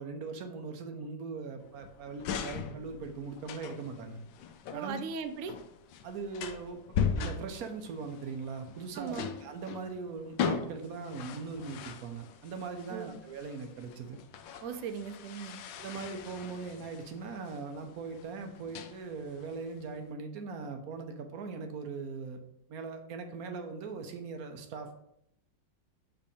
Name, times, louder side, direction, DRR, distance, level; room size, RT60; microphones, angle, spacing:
voice 1, 0.0-4.2 4.7-5.0 6.0-6.8 7.2-14.2 15.7-22.4 22.7-25.0, right 4 dB, 60° right, 5 dB, 1.1 m, -40 dB
sound 1, 1.6-20.1, left 6 dB, 85° left, 1.3 m, -39 dB
voice 2, 4.7-5.5 8.9-9.3 12.9-13.2 14.6-15.6, right 6 dB, 90° right, 9 dB, 0.7 m, -38 dB
8.1 x 3.4 x 4.1 m, 0.78 s
omnidirectional pair, 2.0 m